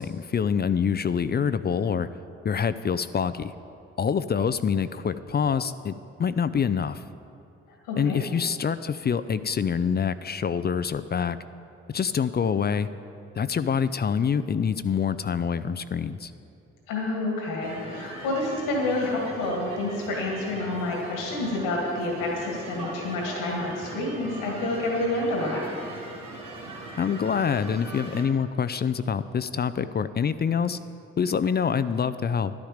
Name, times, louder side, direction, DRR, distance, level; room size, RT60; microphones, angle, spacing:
voice 1, 0.0-2.1 2.4-3.5 4.0-7.0 7.9-11.4 11.9-12.9 13.4-16.3 27.0-30.8 31.2-32.5, left 7 dB, 30° left, 13 dB, 0.4 m, -26 dB
voice 2, 7.7-8.2 16.9-25.6, left 2 dB, 85° left, -1 dB, 2.0 m, -28 dB
sound 1, 17.6-28.2, right 2 dB, 75° right, 2.0 m, -40 dB
11.5 x 10.5 x 5.0 m, 2.7 s
hypercardioid pair, 45°, 32 cm